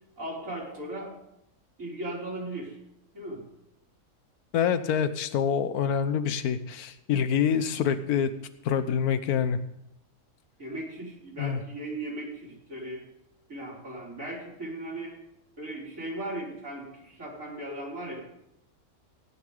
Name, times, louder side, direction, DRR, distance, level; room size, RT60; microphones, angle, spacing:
voice 1, 0.2-1.1 1.8-2.8 3.1-3.4 10.6-13.0 13.5-15.2 15.6-18.2, right 1 dB, 55° right, -3 dB, 4.0 m, -37 dB
voice 2, 4.5-8.3 8.6-9.6 11.4-11.6, left 7 dB, 75° left, 12 dB, 1.3 m, -26 dB
16.0 x 10.5 x 3.9 m, 0.82 s
omnidirectional pair, 1.6 m